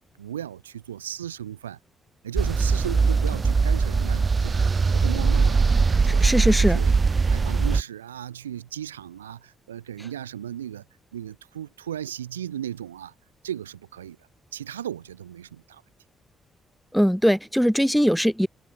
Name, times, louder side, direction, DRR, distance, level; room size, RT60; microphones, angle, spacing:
voice 1, 0.2-1.8 2.2-5.6 5.9-7.0 7.3-10.8 11.1-13.1 13.4-14.2 14.5-15.8, right 10 dB, 85° right, 2.4 m, -36 dB
sound 1, 2.4-7.8, right 4 dB, 35° right, 0.9 m, -21 dB
voice 2, 6.1-6.8 16.9-18.5, equal, ahead, 1.4 m, -21 dB
figure-of-eight pair, 40°, 0 cm